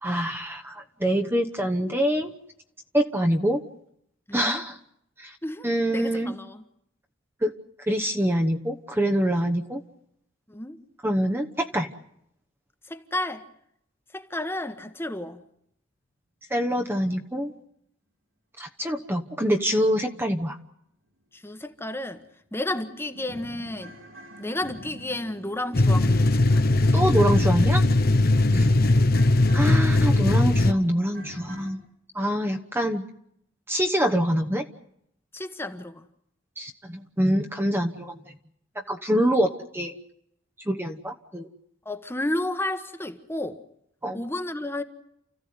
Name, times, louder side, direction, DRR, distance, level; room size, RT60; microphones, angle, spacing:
voice 1, 0.0-2.3 2.9-3.6 4.3-4.7 5.2-5.3 5.6-6.3 7.4-7.5 7.9-9.8 11.0-11.9 16.5-17.5 18.6-20.6 26.9-27.8 28.5-28.7 29.5-31.8 32.1-33.1 33.7-34.7 36.6-38.2 38.7-40.0 40.7-41.5 44.0-44.2, equal, 10° right, 1.1 m, -25 dB
voice 2, 4.3-4.6 5.4-6.6 10.5-10.8 12.9-13.5 14.1-15.4 21.3-22.2 22.5-24.0 24.4-26.8 28.5-28.8 35.3-36.0 41.8-43.6 44.1-44.8, left 1 dB, 10° left, 1.3 m, -32 dB
sound 1, 21.7-21.8 22.2-22.3 22.6-31.7, equal, 80° right, 4.6 m, -45 dB
sound 2, 25.7-30.7, left 2 dB, 50° left, 1.0 m, -19 dB
29.5 x 15.0 x 9.4 m
head